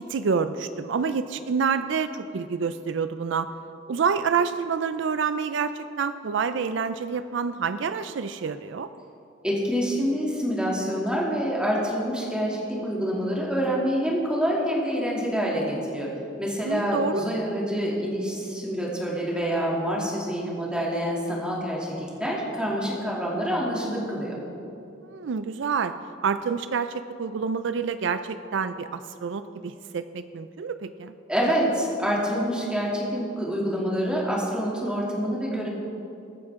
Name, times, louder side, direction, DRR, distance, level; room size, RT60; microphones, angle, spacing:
voice 1, 0.1-3.5 3.9-8.9 16.6-17.3 25.0-25.9 26.2-31.1, right 6 dB, 70° right, 11 dB, 0.4 m, -28 dB
voice 2, 9.4-16.1 16.4-24.4 31.3-35.7, equal, 5° right, -4 dB, 2.7 m, -26 dB
23.0 x 9.5 x 3.7 m, 2.8 s
head